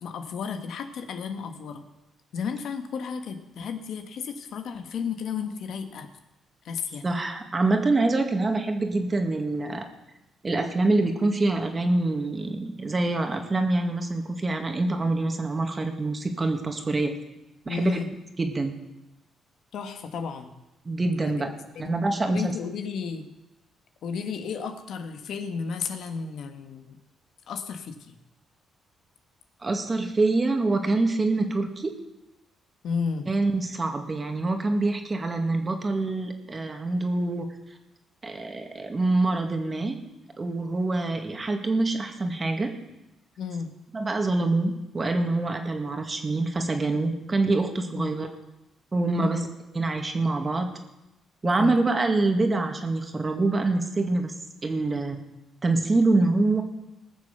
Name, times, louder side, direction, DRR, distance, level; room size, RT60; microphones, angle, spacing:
voice 1, 0.0-1.8 2.3-6.1 6.6-7.0 17.7-18.1 19.7-20.5 21.2-21.5 21.7-21.9 22.3-23.3 24.0-27.0 27.5-28.2 32.8-33.3 43.4-43.7 47.9-48.2 49.2-49.5 51.4-51.7, left 6 dB, 70° left, 7 dB, 1.5 m, -33 dB
voice 2, 7.0-9.9 10.4-17.1 17.7-18.0 18.4-18.7 20.9-22.5 29.6-31.9 33.3-37.5 38.2-40.0 40.4-42.8 43.9-48.3 48.9-49.4 49.8-50.7 51.4-54.3 54.6-55.2 55.6-56.6, right 2 dB, 30° right, 5 dB, 2.0 m, -25 dB
19.5 x 6.9 x 6.8 m, 0.96 s
cardioid pair, 90°, 0 cm